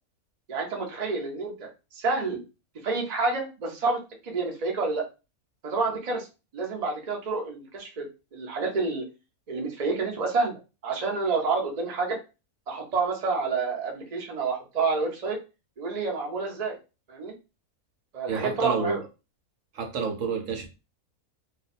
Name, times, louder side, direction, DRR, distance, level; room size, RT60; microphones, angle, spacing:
voice 1, 0.5-2.4 2.8-5.1 5.6-6.3 6.5-9.0 9.5-12.2 12.7-15.4 15.8-16.8 17.1-17.3 18.1-19.0, right 4 dB, 40° right, 1 dB, 0.6 m, -29 dB
voice 2, 18.3-19.0 19.7-20.7, right 5 dB, 65° right, 3 dB, 1.0 m, -29 dB
2.6 x 2.2 x 4.1 m, 0.29 s
omnidirectional pair, 1.6 m